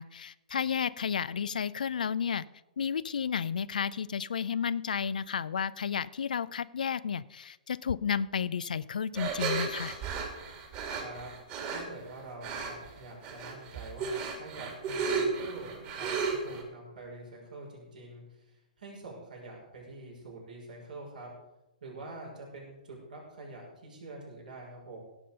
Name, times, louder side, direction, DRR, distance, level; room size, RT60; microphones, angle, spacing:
voice 1, 0.0-2.4 2.8-9.9, left 7 dB, 70° left, 18 dB, 0.4 m, -32 dB
sound 1, 9.1-11.8 12.4-12.9 13.2-16.6, right 5 dB, 35° right, 2.9 m, -34 dB
voice 2, 10.9-11.3 11.7-21.3 21.8-25.0, right 2 dB, 70° right, -2 dB, 5.8 m, -46 dB
17.0 x 7.6 x 5.4 m, 1.0 s
figure-of-eight pair, 120°, 5 cm